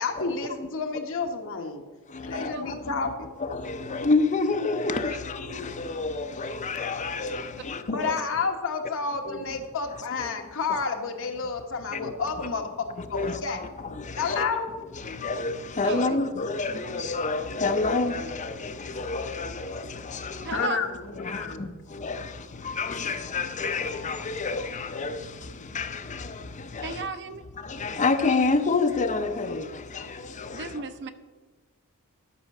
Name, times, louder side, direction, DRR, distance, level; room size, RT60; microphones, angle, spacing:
voice 1, 0.0-1.8 2.2-3.3 7.9-13.6 14.2-14.7 20.5-21.6, left 4 dB, 60° left, 1.2 m, -30 dB
voice 2, 2.1-3.1 3.4-8.2 9.3-9.4 10.2-10.3 10.7-10.8 11.9-12.1 12.4-12.5 13.0-14.5 15.0-20.7 21.2-22.3 22.6-25.2 25.7-26.4 26.7-27.1 27.6-30.7, left 3 dB, 35° left, 0.6 m, -29 dB
voice 3, 15.8-16.2 20.4-20.9 26.8-27.4 30.5-31.1, right 4 dB, 55° right, 0.7 m, -34 dB
11.0 x 5.7 x 6.5 m
head